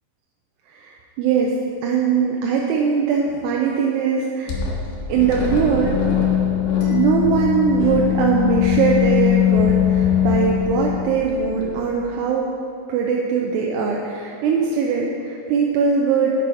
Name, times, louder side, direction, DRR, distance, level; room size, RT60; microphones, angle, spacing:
voice 1, 1.2-1.5 1.8-4.6 5.1-6.0 6.9-12.5 12.9-16.4, right 6 dB, 80° right, -1 dB, 2.5 m, -21 dB
sound 1, 4.5-11.8, left 9 dB, 80° left, 3.7 m, -21 dB
sound 2, 6.8-9.2, right 1 dB, 55° left, 2.9 m, -39 dB
11.0 x 6.2 x 4.8 m, 2.6 s
omnidirectional pair, 5.3 m